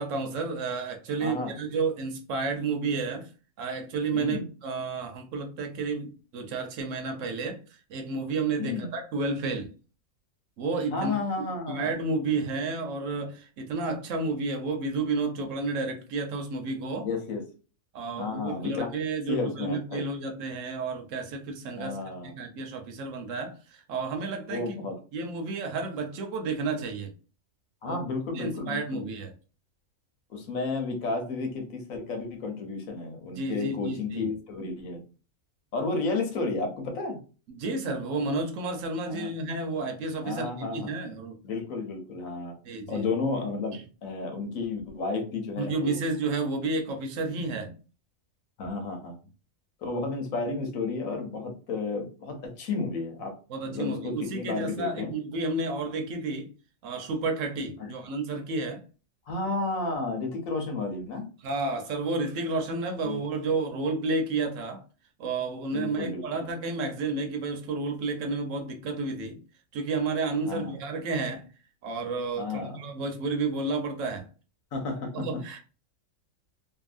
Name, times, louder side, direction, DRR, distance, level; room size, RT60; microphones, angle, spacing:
voice 1, 0.0-3.3 3.6-7.6 7.9-9.7 10.6-11.1 11.7-17.1 17.9-22.0 22.2-24.7 25.1-27.1 27.8-28.0 28.3-29.3 33.4-34.3 37.5-41.3 42.6-43.1 43.7-43.8 45.6-47.7 53.5-56.5 56.8-58.8 61.4-64.8 65.2-69.4 69.7-71.5 71.8-74.3 75.1-75.6, right 3 dB, 70° right, 1.0 m, -31 dB
voice 2, 1.2-1.5 4.1-4.5 8.6-8.9 10.9-11.9 17.0-17.4 18.2-18.9 19.3-20.1 21.8-22.3 24.5-25.0 27.8-29.0 30.3-35.0 35.7-37.2 39.1-39.3 40.2-41.0 41.4-42.6 42.9-46.0 47.4-47.6 48.6-49.2 49.8-53.3 53.6-55.1 57.8-57.9 59.3-61.3 63.0-63.2 65.7-66.6 70.4-70.8 72.4-72.8 74.7-75.4, left 3 dB, 90° left, 1.2 m, -32 dB
2.7 x 2.6 x 2.4 m
omnidirectional pair, 1.4 m